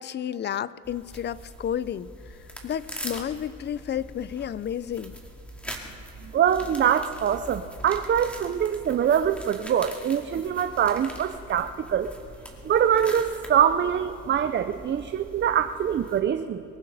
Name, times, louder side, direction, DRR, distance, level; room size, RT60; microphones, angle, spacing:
voice 1, 0.0-2.4 2.6-5.2, left 9 dB, 35° left, 19 dB, 0.4 m, -31 dB
sound 1, 0.8-16.2, equal, 5° left, 2.4 m, -43 dB
voice 2, 6.2-12.1 12.6-16.6, right 9 dB, 35° right, 10 dB, 0.5 m, -24 dB
23.5 x 15.0 x 4.1 m, 2.5 s
cardioid pair, 110°, 33 cm